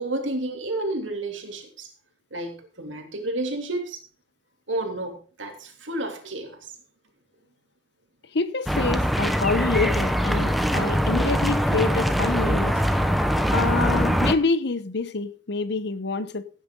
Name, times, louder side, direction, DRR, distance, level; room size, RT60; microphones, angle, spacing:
voice 1, 0.0-1.9 2.3-4.0 4.7-6.6, right 2 dB, 85° right, 2.9 m, -31 dB
voice 2, 8.3-12.8 13.5-16.5, left 3 dB, 60° left, 1.0 m, -26 dB
sound 1, 8.7-14.3, equal, ahead, 1.0 m, -22 dB
16.5 x 9.4 x 3.8 m
head